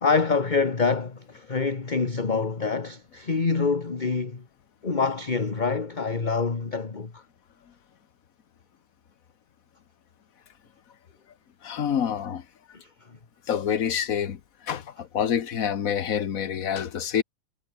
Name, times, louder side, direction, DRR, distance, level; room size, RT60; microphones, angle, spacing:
voice 1, 0.0-4.4 4.8-7.2 13.1-13.2, left 4 dB, 25° left, 1.5 m, -26 dB
voice 2, 11.6-12.4 13.5-17.2, left 8 dB, 50° left, 1.4 m, -27 dB
omnidirectional pair, 2.2 m